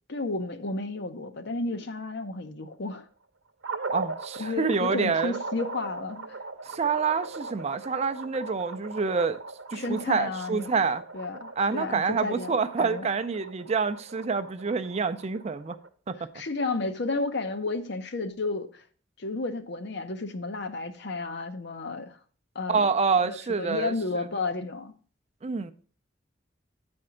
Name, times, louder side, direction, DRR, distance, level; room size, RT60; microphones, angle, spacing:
voice 1, 0.1-3.0 4.4-6.4 9.7-10.8 11.1-13.1 16.3-18.8 19.2-22.2 22.5-22.8 23.2-24.9, left 3 dB, 60° left, 0.8 m, -32 dB
sound 1, 3.6-15.9, right 3 dB, 70° right, 0.8 m, -39 dB
voice 2, 3.9-5.4 6.7-9.4 9.7-11.0 11.6-15.8 16.1-16.2 22.7-23.9 25.4-25.7, right 5 dB, 35° right, 0.4 m, -27 dB
9.5 x 4.4 x 5.0 m
head